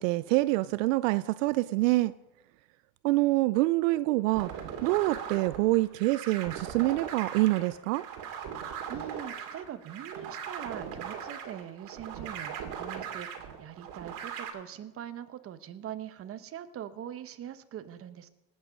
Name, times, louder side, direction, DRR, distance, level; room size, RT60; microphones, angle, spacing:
voice 1, 0.0-2.1 3.0-4.5 4.8-8.0, right 19 dB, 80° right, 0.5 m, -26 dB
sound 1, 4.3-14.5, right 8 dB, 55° right, 2.5 m, -39 dB
voice 2, 8.9-18.3, right 10 dB, 35° right, 1.1 m, -42 dB
18.0 x 8.9 x 5.2 m
supercardioid pair, 115°, 38 cm